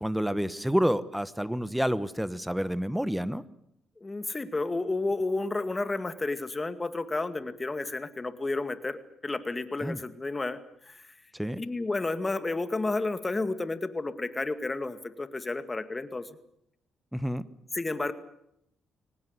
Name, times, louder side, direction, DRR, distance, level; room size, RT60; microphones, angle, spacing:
voice 1, 0.0-3.4 9.8-10.0 11.3-11.6 17.1-17.5, equal, 5° right, 16 dB, 1.1 m, -29 dB
voice 2, 4.0-11.0 11.6-16.3 17.7-18.1, left 2 dB, 20° left, 11 dB, 2.1 m, -31 dB
23.0 x 19.0 x 8.1 m, 0.77 s
cardioid pair, 90°, 0 cm